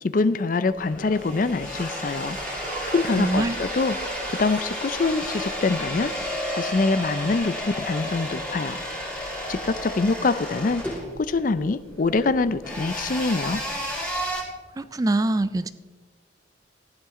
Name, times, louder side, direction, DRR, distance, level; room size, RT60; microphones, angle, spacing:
voice 1, 0.0-4.0 4.4-8.8 9.5-10.8 11.2-13.6, left 3 dB, 45° left, 14 dB, 0.5 m, -25 dB
sound 1, 0.7-14.4, equal, 10° left, 2.8 m, -32 dB
sound 2, 1.2-4.7 7.6-7.7, right 2 dB, 50° right, 1.8 m, -39 dB
voice 2, 3.2-3.6 14.8-15.7, right 2 dB, 20° right, 13 dB, 0.3 m, -24 dB
15.0 x 11.5 x 3.7 m, 1.4 s
head